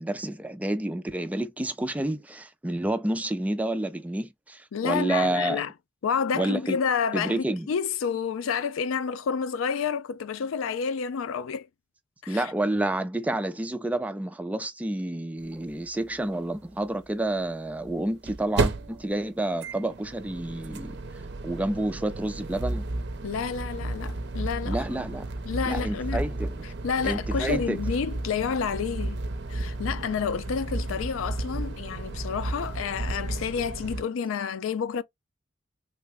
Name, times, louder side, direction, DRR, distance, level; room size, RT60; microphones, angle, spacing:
voice 1, 0.0-5.6 6.3-6.8 7.1-7.7 12.3-21.0 21.4-22.8 24.7-25.3 25.7-26.6 27.0-27.8, right 1 dB, 5° right, 0.3 m, -29 dB
voice 2, 4.7-5.7 6.0-11.7 12.2-12.5 23.2-25.1 25.5-26.2 26.8-29.2 29.5-35.0, left 6 dB, 85° left, 0.4 m, -29 dB
sound 1, 15.4-15.5 15.7-15.8 17.7-34.0, right 2 dB, 60° right, 0.6 m, -33 dB
3.3 x 2.0 x 3.4 m
head